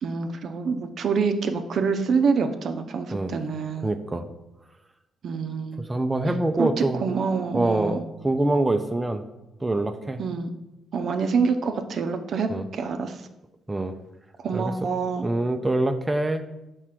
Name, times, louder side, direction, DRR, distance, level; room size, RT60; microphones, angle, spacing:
voice 1, 0.0-3.9 5.2-5.9 6.3-8.0 10.2-10.5 10.9-13.2 14.4-15.3, right 5 dB, 60° right, 7 dB, 0.6 m, -26 dB
voice 2, 3.8-4.3 5.9-7.0 7.5-9.2 9.6-10.2 12.5-12.6 13.7-13.9 14.5-14.7 15.2-16.4, right 2 dB, 15° right, 7 dB, 0.5 m, -25 dB
4.8 x 4.5 x 5.9 m, 0.96 s
cardioid pair, 90°, 0 cm